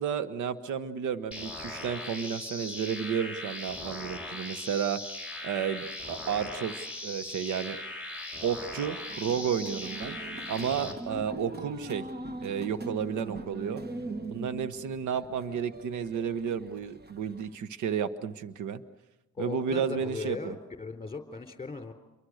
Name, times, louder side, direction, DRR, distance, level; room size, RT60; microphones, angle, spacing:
voice 1, 0.0-5.0 5.4-7.8 8.4-10.2 10.5-12.1 12.4-13.8 14.3-18.8 19.4-20.6, right 7 dB, 75° right, 13 dB, 1.2 m, -32 dB
sound 1, 1.3-10.9, left 1 dB, 5° right, 5.8 m, -39 dB
sound 2, 9.1-17.6, right 2 dB, 35° right, 1.5 m, -41 dB
voice 2, 19.3-21.9, left 4 dB, 20° left, 6 dB, 3.9 m, -38 dB
29.0 x 23.5 x 6.5 m, 1.1 s
cardioid pair, 90°, 30 cm